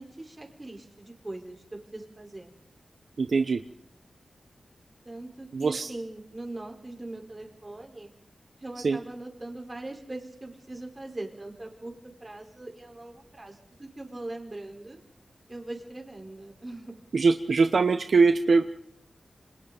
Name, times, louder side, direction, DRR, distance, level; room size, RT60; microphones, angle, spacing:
voice 1, 0.0-2.5 5.0-8.1 8.6-15.0 15.5-16.9, right 2 dB, 25° right, 2 dB, 4.3 m, -41 dB
voice 2, 3.2-3.6 5.5-5.9 8.8-9.0 17.1-18.6, right 4 dB, 65° right, 8 dB, 0.9 m, -22 dB
28.5 x 25.5 x 4.1 m, 0.70 s
wide cardioid pair, 130°, 0 cm